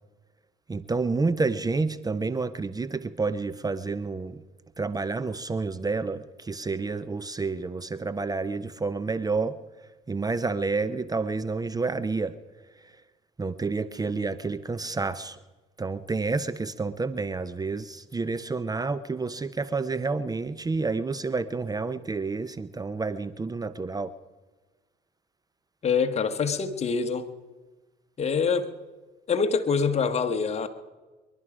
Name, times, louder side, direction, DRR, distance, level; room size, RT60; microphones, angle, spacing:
voice 1, 0.7-4.4 4.8-9.6 10.1-12.4 12.8-12.9 13.4-15.4 15.8-24.1, right 3 dB, 20° right, 15 dB, 0.6 m, -29 dB
voice 2, 25.8-27.3 28.2-28.7 29.3-30.7, left 5 dB, 35° left, 6 dB, 1.3 m, -25 dB
23.5 x 11.5 x 5.0 m, 1.3 s
supercardioid pair, 80°, 19 cm